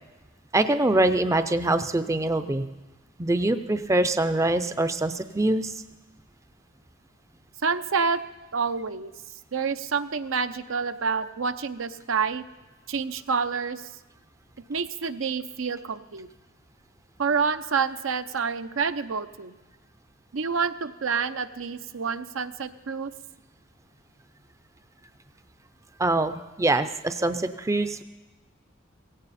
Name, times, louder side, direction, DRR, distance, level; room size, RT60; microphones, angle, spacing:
voice 1, 0.5-2.6 3.2-5.7 26.0-28.0, right 2 dB, 15° right, 10 dB, 0.5 m, -24 dB
voice 2, 7.6-8.2 8.5-9.1 9.5-12.4 12.9-13.9 14.7-16.3 17.2-19.5 20.3-23.1, right 5 dB, 80° right, 10 dB, 0.7 m, -28 dB
17.0 x 16.5 x 4.2 m, 1.2 s
head